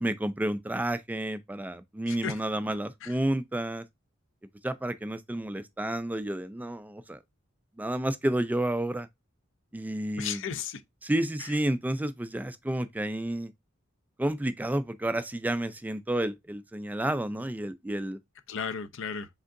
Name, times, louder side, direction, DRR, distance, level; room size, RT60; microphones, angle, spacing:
voice 1, 0.0-3.8 4.6-7.2 7.8-9.1 9.7-10.4 11.0-13.5 14.2-18.2, right 1 dB, 10° right, 0.3 m, -30 dB
voice 2, 2.1-2.4 3.0-3.2 10.2-10.8 11.4-11.6 18.5-19.3, left 7 dB, 65° left, 0.5 m, -35 dB
5.1 x 3.7 x 2.5 m
head